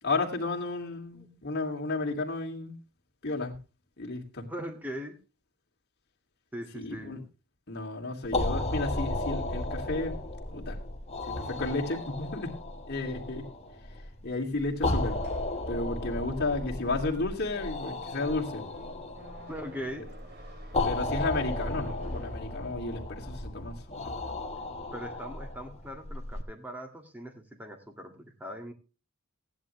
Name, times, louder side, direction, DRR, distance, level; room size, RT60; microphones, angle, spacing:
voice 1, 0.0-2.7 3.2-3.6 4.0-4.5 6.7-7.2 7.7-10.2 10.5-10.8 11.4-12.5 12.9-13.5 14.2-15.2 15.7-18.7 20.8-24.1, left 3 dB, 50° left, 1 dB, 2.7 m, -33 dB
voice 2, 4.5-5.1 6.5-7.2 19.5-20.0 24.9-28.7, equal, 10° right, 4 dB, 2.1 m, -40 dB
sound 1, 8.2-26.4, left 2 dB, 30° left, 1.5 m, -34 dB
sound 2, 15.0-23.1, right 1 dB, 50° right, 3.3 m, -53 dB
16.0 x 11.0 x 3.3 m, 0.31 s
head